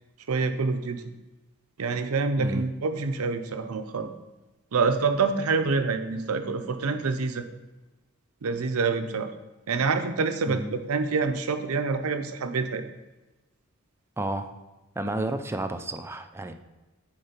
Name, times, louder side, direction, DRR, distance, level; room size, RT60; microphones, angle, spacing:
voice 1, 0.3-1.0 1.8-4.1 4.7-7.4 8.4-9.3 9.7-12.8, right 4 dB, 85° right, 8 dB, 0.6 m, -26 dB
voice 2, 14.2-14.5 15.0-16.5, right 1 dB, 10° right, 7 dB, 0.4 m, -31 dB
6.5 x 4.8 x 4.3 m, 1.1 s
head